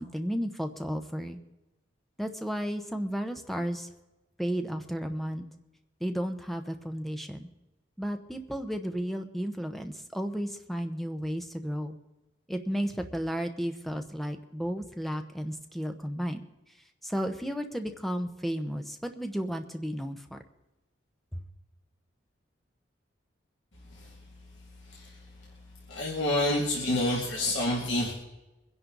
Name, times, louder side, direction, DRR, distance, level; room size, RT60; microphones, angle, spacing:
voice 1, 0.0-1.4 2.2-3.9 4.4-5.4 6.0-7.5 8.0-12.0 12.5-16.4 17.0-20.4 21.3-21.4, equal, ahead, 6 dB, 0.9 m, -33 dB
voice 2, 24.9-25.2 25.9-28.1, left 1 dB, 75° left, -4 dB, 2.5 m, -28 dB
23.5 x 10.5 x 4.0 m, 1.0 s
head